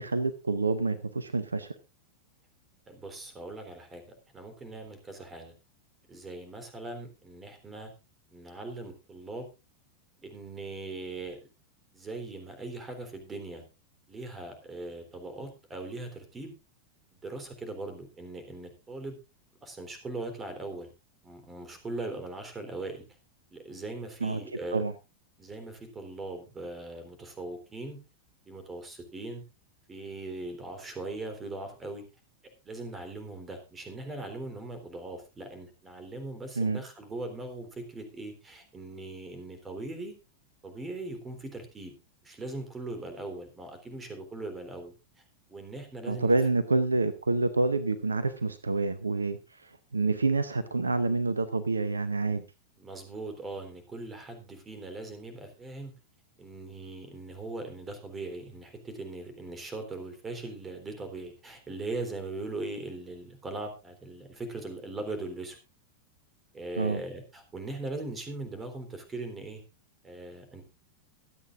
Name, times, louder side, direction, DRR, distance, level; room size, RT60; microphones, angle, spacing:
voice 1, 0.0-1.8 24.2-24.4 24.7-24.9 36.6-36.8 46.1-52.4 66.8-67.0, right 3 dB, 75° right, 15 dB, 0.7 m, -28 dB
voice 2, 2.9-4.0 4.3-5.5 6.1-7.9 8.3-9.5 10.2-11.4 11.9-13.6 14.1-16.5 17.1-19.2 19.6-20.9 21.2-23.0 23.5-24.8 25.4-28.0 28.5-29.4 29.9-32.1 32.7-40.1 40.6-42.0 42.2-44.9 45.5-46.4 52.8-55.9 56.4-65.6 66.5-69.6 70.0-70.6, right 2 dB, 15° right, 8 dB, 3.6 m, -40 dB
23.5 x 8.6 x 2.5 m, 0.28 s
figure-of-eight pair, 90°, 0 cm